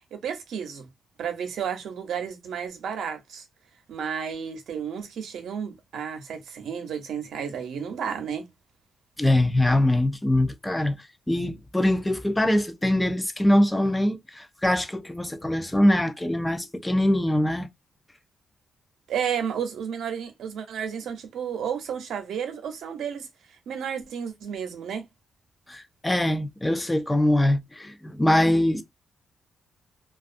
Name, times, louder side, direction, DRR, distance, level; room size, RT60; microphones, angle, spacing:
voice 1, 0.1-0.9 1.2-3.4 3.9-8.5 19.1-23.3 23.7-25.0, right 7 dB, 85° right, 0.7 m, -32 dB
voice 2, 9.2-17.7 25.7-28.8, left 1 dB, 10° left, 0.4 m, -23 dB
2.3 x 2.3 x 2.5 m
cardioid pair, 120°, 0 cm